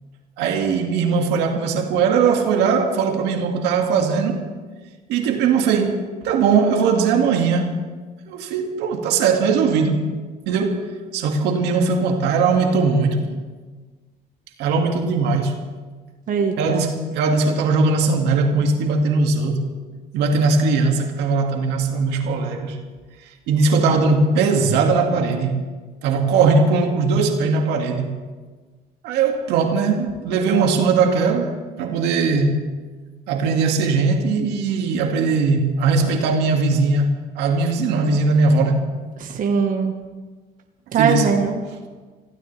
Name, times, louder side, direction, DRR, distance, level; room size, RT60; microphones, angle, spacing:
voice 1, 0.4-4.5 5.1-7.8 8.3-10.1 10.5-13.4 14.6-15.6 16.6-19.8 20.1-22.8 23.5-25.6 26.0-28.2 29.0-32.7 33.3-38.9 40.9-41.3, right 4 dB, 90° right, 2.1 m, -19 dB
voice 2, 16.3-16.9 39.2-39.9 40.9-41.6, right 6 dB, 55° right, 1.5 m, -21 dB
25.5 x 16.0 x 3.4 m
cardioid pair, 110°, 17 cm